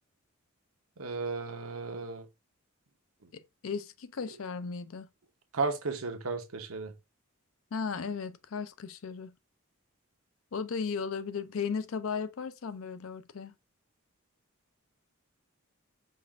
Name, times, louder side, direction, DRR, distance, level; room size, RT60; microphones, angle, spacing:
voice 1, 1.0-2.3 5.5-6.9, right 3 dB, 85° right, 0.9 m, -34 dB
voice 2, 3.3-5.1 7.7-9.3 10.5-13.5, left 5 dB, 75° left, 0.5 m, -36 dB
5.3 x 2.4 x 3.5 m
head